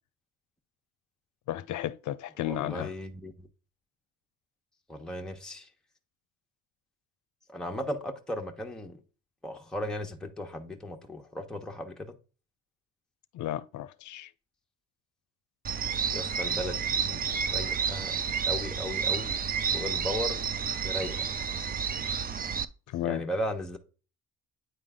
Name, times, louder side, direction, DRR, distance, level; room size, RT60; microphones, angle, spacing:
voice 1, 1.5-2.9 13.3-14.3 22.9-23.2, left 13 dB, 75° left, 0.6 m, -33 dB
voice 2, 2.5-3.5 4.9-5.7 7.5-9.0 9.4-12.1 16.1-17.2 17.5-18.2 18.4-19.4 19.7-20.4 20.8-21.3 23.0-23.8, left 1 dB, ahead, 1.2 m, -36 dB
sound 1, 15.6-22.6, right 6 dB, 30° right, 0.5 m, -30 dB
9.2 x 3.8 x 3.7 m
cardioid pair, 90°, 30 cm